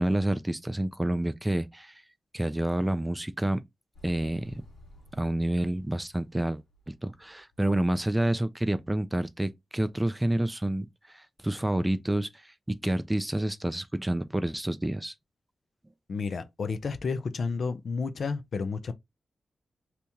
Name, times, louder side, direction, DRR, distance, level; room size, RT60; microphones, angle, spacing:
voice 1, 0.0-2.0 2.3-3.6 4.0-4.6 5.1-6.6 6.9-15.1, right 1 dB, 15° right, 0.3 m, -29 dB
Motorcycle, 3.9-7.9, left 1 dB, 85° left, 1.3 m, -54 dB
voice 2, 16.1-18.9, left 4 dB, 65° left, 0.5 m, -31 dB
2.9 x 2.8 x 3.5 m
wide cardioid pair, 100°, 0 cm